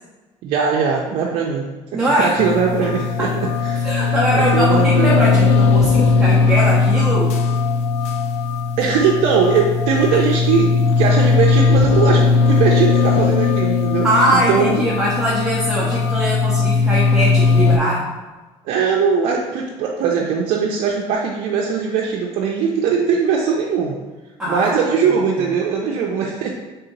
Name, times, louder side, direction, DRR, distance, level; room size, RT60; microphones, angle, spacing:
voice 1, 0.4-3.3 3.6-5.5 8.8-14.9 18.6-24.0 24.5-26.5, right 6 dB, 70° right, -2 dB, 0.5 m, -20 dB
voice 2, 1.9-2.4 3.2-3.3 3.8-7.4 10.1-10.2 14.0-18.1 24.4-24.9, right 1 dB, 5° right, -8 dB, 0.8 m, -21 dB
sound 1, 2.4-17.8, left 4 dB, 65° left, 0.5 m, -18 dB
3.5 x 2.8 x 3.9 m, 1.2 s
supercardioid pair, 100°, 12 cm